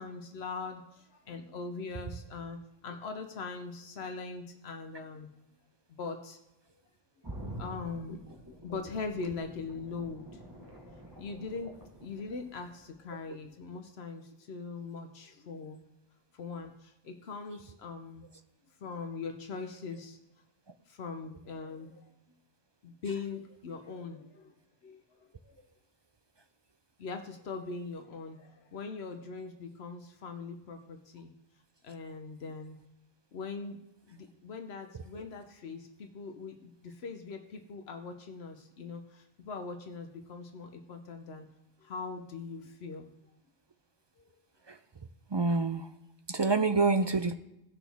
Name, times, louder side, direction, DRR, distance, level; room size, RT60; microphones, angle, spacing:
voice 1, 0.0-5.3 6.0-6.4 7.6-8.2 8.6-15.8 16.3-18.3 18.8-20.2 20.9-22.0 22.8-24.5 24.8-25.6 27.0-31.3 31.8-32.8 33.3-33.8 34.1-41.5 41.8-43.1, left 4 dB, 85° left, 5 dB, 1.1 m, -41 dB
sound 1, 7.2-13.1 13.4-13.5, right 1 dB, 20° right, 1.3 m, -47 dB
voice 2, 45.3-45.9 46.3-47.3, right 3 dB, 45° right, 9 dB, 0.3 m, -26 dB
17.5 x 6.1 x 3.5 m, 0.88 s
omnidirectional pair, 1.0 m